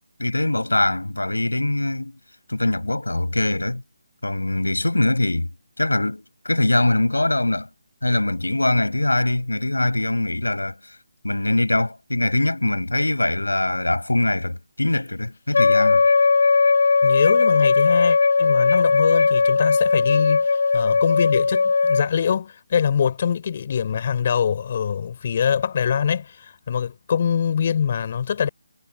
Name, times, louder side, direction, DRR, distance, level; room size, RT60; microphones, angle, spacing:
voice 1, 0.2-2.2 2.5-3.8 4.2-5.5 5.8-7.7 8.0-10.8 11.2-16.1, left 2 dB, 80° left, 7.5 m, -22 dB
Wind instrument woodwind instrument, 15.5-22.1, left 4 dB, 55° left, 2.1 m, -18 dB
voice 2, 17.0-28.5, left 7 dB, 40° left, 5.3 m, -24 dB
figure-of-eight pair, 150°, 0 cm